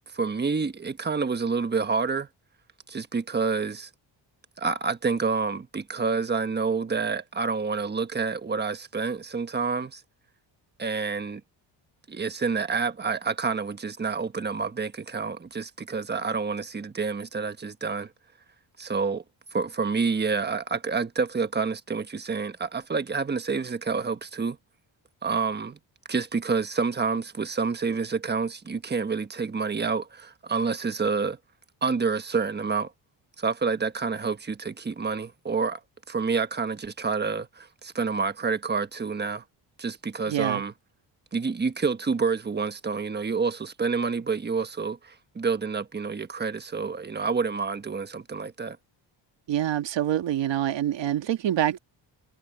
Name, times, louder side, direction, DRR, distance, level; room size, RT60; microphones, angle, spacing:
voice 1, 0.1-2.3 2.9-3.9 4.6-10.0 10.8-11.4 12.1-18.1 18.8-19.2 19.5-24.6 25.2-25.8 26.1-31.4 31.8-32.9 33.4-35.8 36.1-39.4 39.8-40.7 41.3-48.8, right 5 dB, 20° right, 1.3 m, -28 dB
voice 2, 40.3-40.6 49.5-51.8, right 11 dB, 70° right, 1.7 m, -26 dB
cardioid pair, 130°, 45 cm